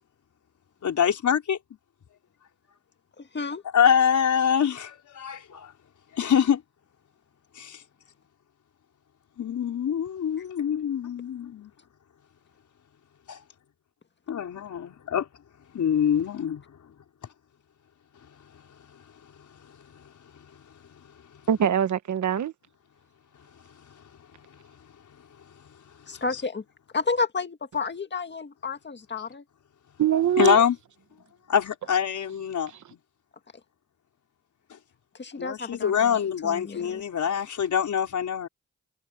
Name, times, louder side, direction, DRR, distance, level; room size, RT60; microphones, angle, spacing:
voice 1, 0.8-1.6 3.7-5.7 6.1-6.6 7.6-7.8 9.4-11.7 13.3-13.4 14.3-15.3 15.7-16.6 30.4-30.8 31.5-32.7 35.4-38.5, left 8 dB, 80° left, 4.6 m, -24 dB
voice 2, 3.2-3.6 26.1-26.6 26.9-29.4 35.2-37.0, left 4 dB, 35° left, 1.9 m, -31 dB
voice 3, 21.5-22.5 30.0-30.6 32.7-32.8, right 9 dB, 75° right, 1.3 m, -23 dB
cardioid pair, 75°, 30 cm